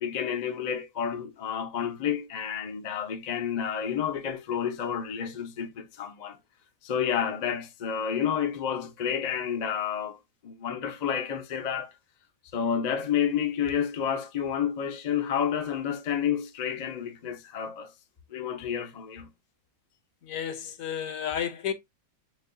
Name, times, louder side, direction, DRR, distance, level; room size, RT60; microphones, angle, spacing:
voice 1, 0.0-6.4 6.8-10.2 10.4-11.9 12.5-17.9 18.3-19.3, left 8 dB, 50° left, 0.4 m, -30 dB
voice 2, 20.2-21.7, left 8 dB, 70° left, 1.0 m, -32 dB
6.2 x 2.3 x 2.6 m
omnidirectional pair, 1.6 m